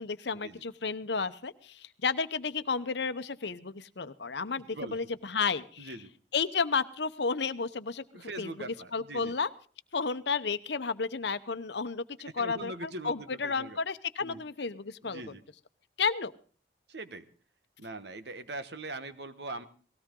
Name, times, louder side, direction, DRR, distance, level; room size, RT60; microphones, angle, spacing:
voice 1, 0.0-5.9 6.3-8.5 8.9-9.5 9.9-15.3 16.0-16.3, left 5 dB, 70° left, 12 dB, 0.9 m, -32 dB
voice 2, 5.8-6.1 8.1-9.3 12.2-13.8 14.2-14.4 15.0-15.4 16.9-17.3 17.8-19.7, right 2 dB, 70° right, 11 dB, 1.3 m, -41 dB
19.0 x 16.5 x 3.8 m, 0.41 s
head